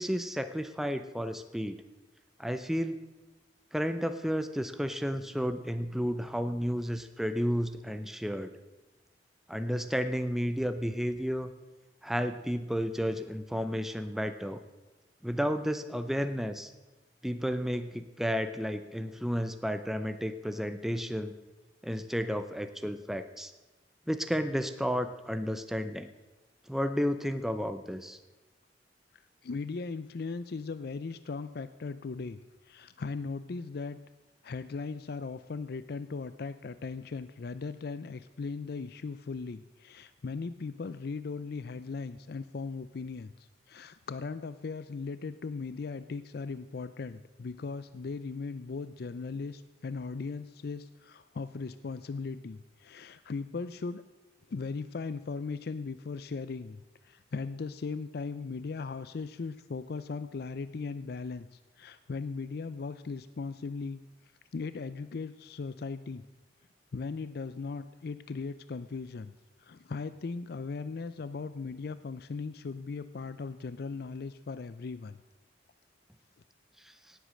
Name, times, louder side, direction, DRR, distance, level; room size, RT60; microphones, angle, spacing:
voice 1, 0.0-1.8 2.4-3.0 3.7-8.5 9.5-11.5 12.0-14.6 15.2-16.7 17.2-21.3 21.8-23.5 24.1-26.1 26.7-28.2 76.8-76.9, equal, ahead, 9 dB, 0.6 m, -32 dB
voice 2, 29.1-34.0 34.4-54.0 54.5-64.0 64.5-66.3 66.9-69.3 69.6-75.2, left 4 dB, 60° left, 13 dB, 0.4 m, -38 dB
17.5 x 8.2 x 6.4 m, 1.1 s
head